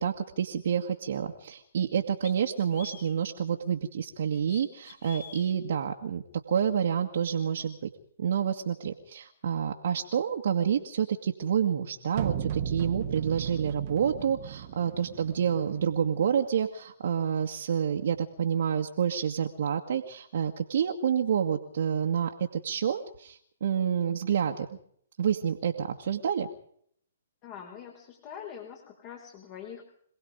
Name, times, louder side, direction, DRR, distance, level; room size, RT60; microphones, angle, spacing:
voice 1, 0.0-6.2 6.5-7.8 8.2-24.7 25.2-26.5, right 8 dB, 60° right, 2 dB, 2.0 m, -28 dB
sound 1, 1.4-1.5 2.2-3.2 4.3-5.5, left 8 dB, 50° left, 4.7 m, -47 dB
sound 2, 12.1-16.2, right 8 dB, 40° right, 1.6 m, -35 dB
voice 2, 27.4-29.8, left 8 dB, 30° left, 2 dB, 4.8 m, -44 dB
27.0 x 18.5 x 5.2 m, 0.64 s
figure-of-eight pair, 130°, 0 cm